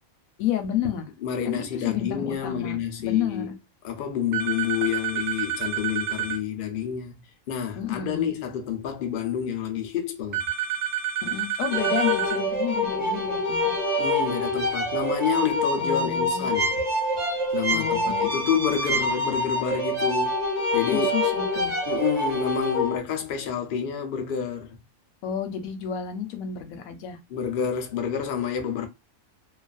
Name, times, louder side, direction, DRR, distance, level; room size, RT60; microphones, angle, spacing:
voice 1, 0.4-1.1 1.4-3.5 7.8-8.3 11.2-13.8 15.8-16.5 17.7-18.3 20.9-21.7 25.2-27.2, left 9 dB, 85° left, 1.0 m, -31 dB
voice 2, 1.2-3.5 3.8-7.2 7.5-10.4 14.0-16.7 17.5-20.3 20.7-21.1 21.9-24.8 27.3-28.9, left 8 dB, 65° left, 0.5 m, -28 dB
sound 1, 4.3-6.4 10.3-12.4, right 10 dB, 60° right, 0.4 m, -29 dB
sound 2, 11.7-23.0, left 1 dB, 25° right, 0.8 m, -26 dB
2.4 x 2.4 x 2.3 m
omnidirectional pair, 1.5 m